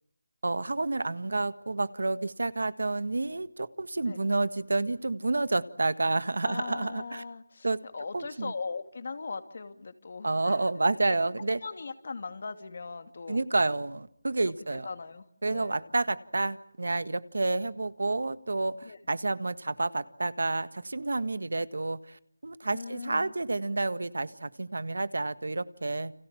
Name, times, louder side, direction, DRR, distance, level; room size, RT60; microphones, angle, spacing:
voice 1, 0.4-7.2 7.6-7.8 8.1-8.5 10.2-11.6 13.3-14.9 15.4-26.1, right 2 dB, 80° right, 14 dB, 1.6 m, -29 dB
voice 2, 6.4-10.6 11.1-11.2 11.6-13.4 14.4-14.5 14.8-15.2 15.5-15.9 18.8-19.0 22.7-23.3, left 4 dB, 45° left, 9 dB, 2.5 m, -39 dB
30.0 x 25.5 x 7.3 m, 0.71 s
figure-of-eight pair, 175°, 0 cm